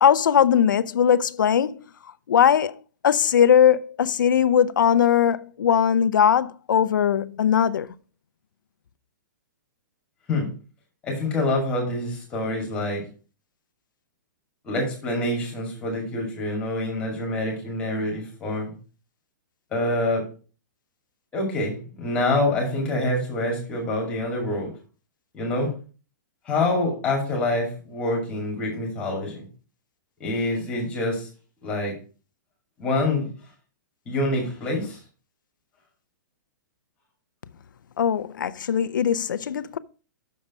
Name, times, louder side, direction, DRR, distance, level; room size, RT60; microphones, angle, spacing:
voice 1, 0.0-1.8 2.3-2.7 3.0-7.9 38.0-39.8, left 8 dB, 90° left, 0.6 m, -20 dB
voice 2, 11.0-13.0 14.6-18.7 19.7-20.2 21.3-24.7 25.3-25.7 26.5-29.4 30.2-31.3 31.6-31.9 32.8-33.3 34.1-35.0, left 2 dB, 10° left, 2.4 m, -26 dB
6.6 x 5.4 x 5.9 m
hypercardioid pair, 175°, 10 cm